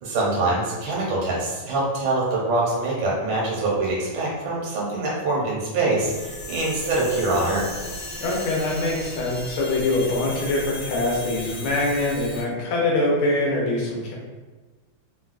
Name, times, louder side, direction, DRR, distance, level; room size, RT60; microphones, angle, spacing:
voice 1, 0.0-7.7, right 2 dB, 65° right, -4 dB, 1.5 m, -24 dB
sound 1, 6.0-12.4, left 2 dB, 55° left, 1.7 m, -36 dB
voice 2, 8.2-14.2, left 2 dB, 85° left, -3 dB, 1.6 m, -24 dB
3.7 x 2.2 x 2.4 m, 1.3 s
omnidirectional pair, 2.3 m